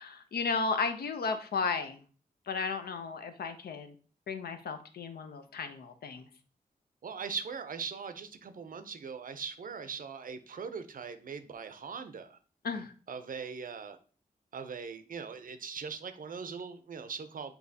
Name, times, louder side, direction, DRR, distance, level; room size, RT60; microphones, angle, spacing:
voice 1, 0.0-2.0 2.5-3.9 4.3-6.3 12.6-12.9, left 4 dB, 85° left, 8 dB, 0.5 m, -34 dB
voice 2, 7.0-12.4 13.1-14.0 14.5-17.5, right 6 dB, 60° right, 10 dB, 0.5 m, -40 dB
6.1 x 2.7 x 2.7 m, 0.40 s
cardioid pair, 50°, 16 cm